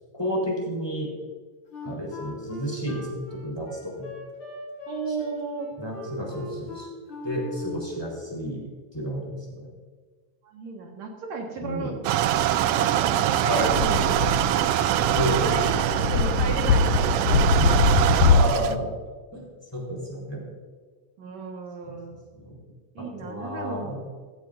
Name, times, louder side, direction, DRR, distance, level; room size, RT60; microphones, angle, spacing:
voice 1, 0.1-1.1 1.8-4.1 5.8-6.9 7.2-8.7 8.9-9.7 11.6-12.0 13.5-13.7 15.1-15.4 18.3-18.9 19.3-20.5 22.3-22.5 23.0-24.0, equal, 10° left, -4 dB, 3.8 m, -31 dB
Wind instrument woodwind instrument, 1.7-8.0, left 1 dB, 50° left, 3.5 m, -40 dB
voice 2, 4.9-5.7 10.4-12.0 12.5-14.7 15.4-17.9 21.2-22.2 22.9-24.0, right 4 dB, 70° right, 1 dB, 2.8 m, -34 dB
sound 1, 12.0-18.7, right 12 dB, 90° right, 1.4 m, -23 dB
sound 2, 13.6-18.5, left 4 dB, 75° left, 1.9 m, -22 dB
16.5 x 16.0 x 2.6 m, 1.5 s
omnidirectional pair, 3.3 m